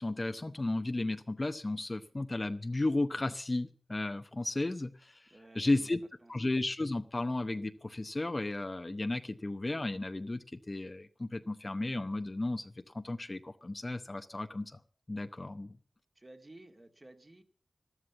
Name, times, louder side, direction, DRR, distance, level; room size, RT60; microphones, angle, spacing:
voice 1, 0.0-5.3 5.6-6.0 6.3-14.8 15.1-15.8, left 2 dB, 35° left, 8 dB, 0.8 m, -34 dB
voice 2, 5.3-5.9 6.2-6.3 16.2-17.4, right 1 dB, 30° right, 5 dB, 2.1 m, -54 dB
13.0 x 13.0 x 7.2 m, 0.43 s
wide cardioid pair, 70°, 0 cm